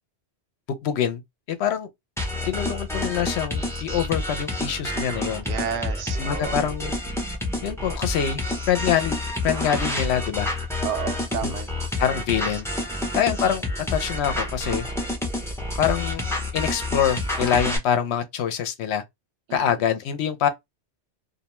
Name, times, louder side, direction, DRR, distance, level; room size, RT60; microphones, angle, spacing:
voice 1, 0.7-1.2 1.5-1.9 2.4-5.5 6.2-6.9 7.6-8.4 8.7-9.2 9.4-10.5 11.4-11.5 12.0-12.7 13.1-13.6 13.9-14.8 15.8-16.2 16.5-19.0 19.5-20.5, left 9 dB, 70° left, 0.8 m, -25 dB
sound 1, 2.2-17.8, left 1 dB, 5° left, 0.4 m, -28 dB
voice 2, 5.4-6.7 10.8-11.7 12.9-13.2 19.5-19.7, right 7 dB, 85° right, 0.9 m, -32 dB
2.5 x 2.2 x 2.9 m
omnidirectional pair, 1.2 m